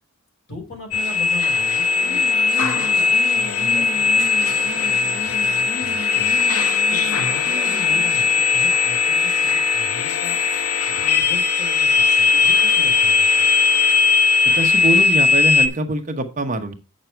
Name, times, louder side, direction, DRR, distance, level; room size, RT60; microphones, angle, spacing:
voice 1, 0.5-6.4 6.9-10.4 10.9-13.3, left 2 dB, 60° left, 0 dB, 4.4 m, -38 dB
sound 1, 0.9-15.7, left 4 dB, 85° left, 0.7 m, -18 dB
sound 2, 2.0-8.4, left 2 dB, 40° left, 0.8 m, -35 dB
sound 3, 10.0-11.1, equal, 15° left, 4.3 m, -47 dB
voice 2, 14.4-16.7, right 2 dB, 35° right, 5 dB, 1.0 m, -24 dB
8.0 x 6.5 x 4.4 m, 0.33 s
head